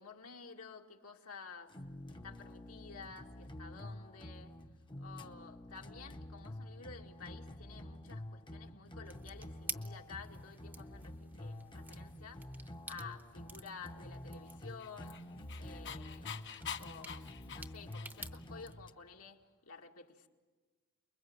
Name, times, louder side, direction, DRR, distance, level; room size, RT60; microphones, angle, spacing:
voice 1, 0.0-1.8 2.1-4.6 5.0-15.2 15.6-16.4 16.8-20.3, left 5 dB, 80° left, 2.1 m, -52 dB
sound 1, 1.7-18.9, left 1 dB, 20° left, 0.8 m, -48 dB
sound 2, 9.0-18.7, right 3 dB, 10° right, 0.8 m, -52 dB
Dog, 14.6-18.5, left 8 dB, 50° left, 1.0 m, -46 dB
29.5 x 21.5 x 8.0 m
head